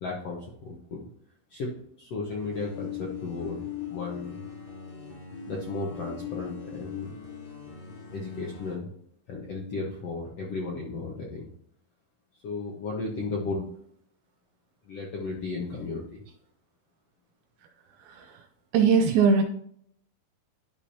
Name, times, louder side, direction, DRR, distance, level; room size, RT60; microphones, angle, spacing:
voice 1, 0.0-1.0 1.5-1.7 2.0-4.4 5.5-7.1 8.1-8.9 9.3-11.5 12.4-13.7 14.9-16.2, left 3 dB, 70° left, -2 dB, 1.5 m, -34 dB
sound 1, 2.3-8.8, left 8 dB, 45° left, 4.3 m, -40 dB
voice 2, 18.0-18.4 18.7-19.4, right 5 dB, 80° right, 6 dB, 2.2 m, -21 dB
12.0 x 5.3 x 2.8 m, 0.66 s
omnidirectional pair, 4.7 m